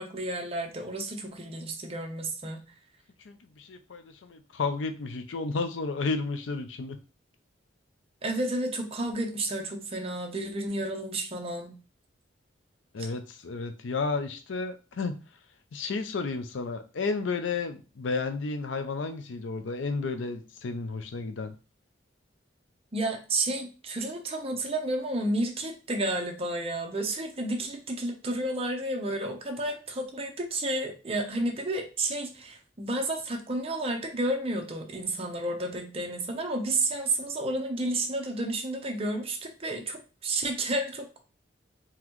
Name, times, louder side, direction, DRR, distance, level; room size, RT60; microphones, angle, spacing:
voice 1, 0.0-2.6 8.2-11.8 22.9-41.2, right 2 dB, 30° right, 2 dB, 0.7 m, -31 dB
voice 2, 3.2-7.0 12.9-15.2 15.7-21.6, left 4 dB, 85° left, 8 dB, 0.5 m, -32 dB
3.9 x 2.9 x 3.0 m, 0.33 s
head